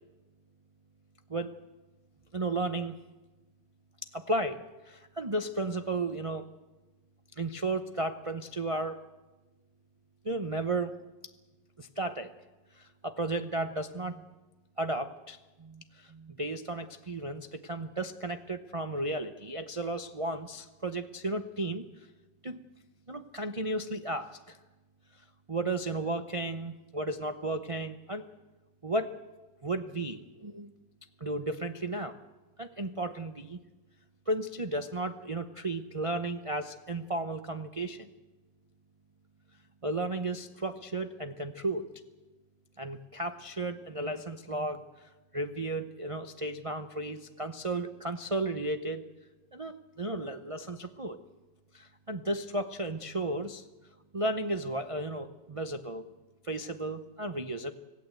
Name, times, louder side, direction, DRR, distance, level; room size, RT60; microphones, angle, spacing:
voice 1, 2.3-3.0 4.1-6.5 7.4-9.0 10.2-10.9 11.8-12.3 12.7-14.2 14.8-21.8 22.4-22.6 23.1-24.6 25.5-28.2 28.8-29.2 29.6-30.7 31.2-32.2 32.6-33.6 34.3-38.1 39.8-41.9 42.8-49.1 49.5-51.2 51.7-53.7 54.1-56.1 56.4-57.7, right 2 dB, 60° right, 6 dB, 0.3 m, -34 dB
26.0 x 17.0 x 8.0 m, 1.2 s
omnidirectional pair, 2.0 m